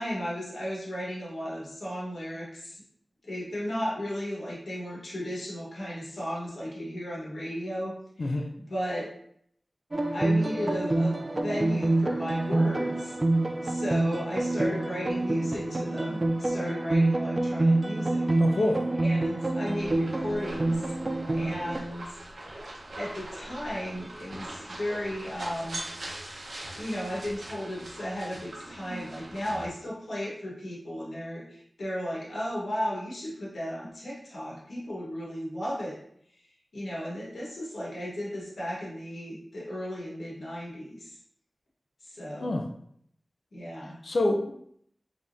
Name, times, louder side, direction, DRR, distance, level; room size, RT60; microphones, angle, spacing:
voice 1, 0.0-2.8 3.3-9.1 10.1-13.1 13.6-18.3 19.0-20.9 21.3-22.5 23.0-25.8 26.7-36.0 36.7-41.1 42.1-42.6 43.5-44.0, equal, 90° left, -6 dB, 1.2 m, -35 dB
voice 2, 8.2-8.5 18.4-18.8 42.4-42.7 44.0-44.5, left 2 dB, 70° left, 4 dB, 0.4 m, -26 dB
sound 1, 9.9-21.8, right 2 dB, 40° right, 0.4 m, -27 dB
sound 2, 19.8-29.7, right 1 dB, 80° right, 0.8 m, -42 dB
3.5 x 3.5 x 2.6 m, 0.68 s
wide cardioid pair, 70°, 0 cm